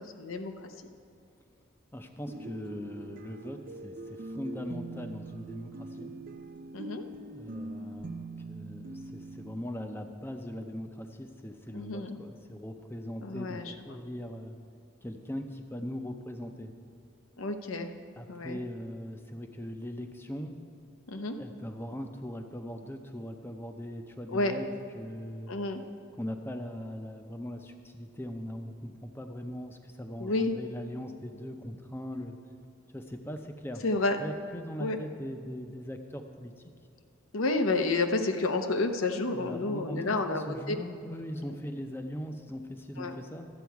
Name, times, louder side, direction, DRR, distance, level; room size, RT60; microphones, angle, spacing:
voice 1, 0.2-0.7 6.7-7.0 11.7-12.2 13.2-14.0 17.4-17.9 18.3-18.6 21.1-21.4 24.3-24.5 25.5-25.8 30.2-30.5 33.8-34.2 34.8-35.0 37.3-40.8 43.0-43.2, left 2 dB, 85° left, 7 dB, 0.7 m, -30 dB
voice 2, 1.9-6.1 7.3-14.6 15.0-16.7 18.2-20.5 21.4-24.7 24.9-25.5 26.2-32.4 32.9-33.8 34.2-36.5 39.3-43.5, equal, 10° left, 5 dB, 0.5 m, -40 dB
sound 1, 2.3-9.6, right 2 dB, 40° right, 0.4 m, -43 dB
12.0 x 8.1 x 4.7 m, 2.4 s
head